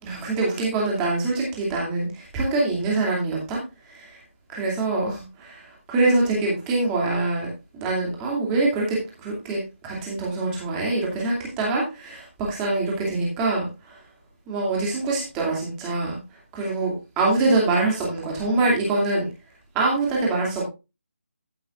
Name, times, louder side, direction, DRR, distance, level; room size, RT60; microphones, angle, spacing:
voice 1, 0.0-3.6 3.9-4.2 4.5-14.0 14.5-16.2 16.5-19.2 19.7-20.6, right 2 dB, 10° right, -3 dB, 2.5 m, -24 dB
15.0 x 7.7 x 2.5 m, 0.26 s
figure-of-eight pair, 175°, 7 cm